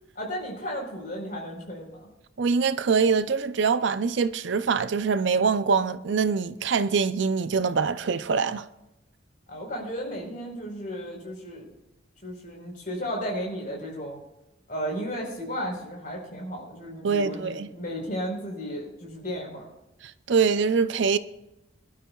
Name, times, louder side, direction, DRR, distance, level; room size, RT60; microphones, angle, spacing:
voice 1, 0.2-2.1 9.5-11.7 12.2-14.2 14.7-19.7, equal, 45° left, 4.3 m, -34 dB
voice 2, 2.4-8.7 17.0-17.7 20.3-21.2, right 5 dB, 70° right, 0.5 m, -24 dB
24.0 x 12.0 x 2.4 m
head